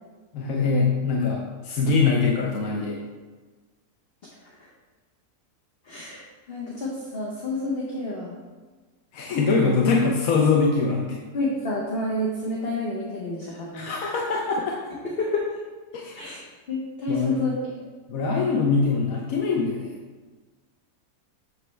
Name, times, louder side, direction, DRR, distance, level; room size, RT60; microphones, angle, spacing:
voice 1, 0.3-3.0 9.1-11.2 13.4-14.8 15.9-16.3 17.1-17.4 18.1-19.9, left 4 dB, 65° left, 0 dB, 1.1 m, -23 dB
voice 2, 5.8-8.3 11.3-13.9 15.0-15.4 16.2-16.4 16.7-17.5, left 2 dB, 45° left, -3 dB, 1.0 m, -29 dB
7.6 x 6.6 x 3.2 m, 1.4 s
omnidirectional pair, 1.7 m